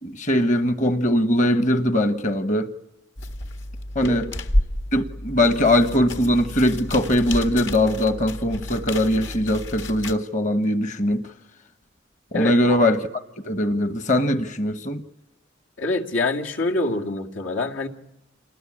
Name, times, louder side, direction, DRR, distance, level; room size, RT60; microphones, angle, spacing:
voice 1, 0.0-2.7 3.9-4.3 4.9-11.2 12.3-13.1 13.4-15.0, left 1 dB, 40° left, 1.2 m, -21 dB
sound 1, 3.2-10.1, left 1 dB, 70° left, 1.8 m, -30 dB
voice 2, 4.0-4.4 12.3-12.8 15.8-17.9, left 2 dB, 90° left, 2.3 m, -26 dB
28.0 x 20.5 x 9.9 m
head